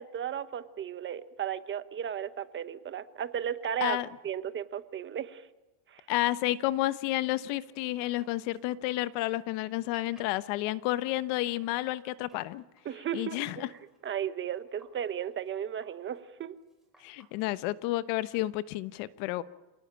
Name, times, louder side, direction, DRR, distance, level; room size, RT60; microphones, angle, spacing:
voice 1, 0.0-4.0 4.2-5.5 5.9-6.0 12.8-13.7 14.0-16.6, right 9 dB, 25° right, 12 dB, 1.1 m, -35 dB
voice 2, 6.1-12.6 13.1-13.7 17.0-19.4, left 16 dB, 65° left, 14 dB, 1.1 m, -31 dB
sound 1, 7.3-11.8 12.3-13.2 13.5-17.4, right 1 dB, ahead, 5.8 m, -62 dB
27.5 x 18.0 x 9.0 m, 1.1 s
supercardioid pair, 140°, 44 cm